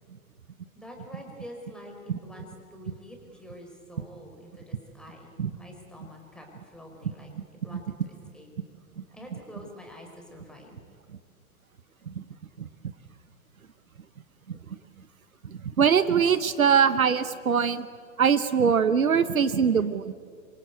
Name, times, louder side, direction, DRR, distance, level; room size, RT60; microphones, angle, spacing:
voice 1, 0.7-1.9 2.2-7.3 7.6-8.5 9.1-10.8, left 1 dB, ahead, 1 dB, 4.8 m, -46 dB
voice 2, 15.4-17.9 18.2-20.1, right 7 dB, 75° right, 14 dB, 1.1 m, -22 dB
27.0 x 24.5 x 8.3 m, 2.1 s
figure-of-eight pair, 110°, 42 cm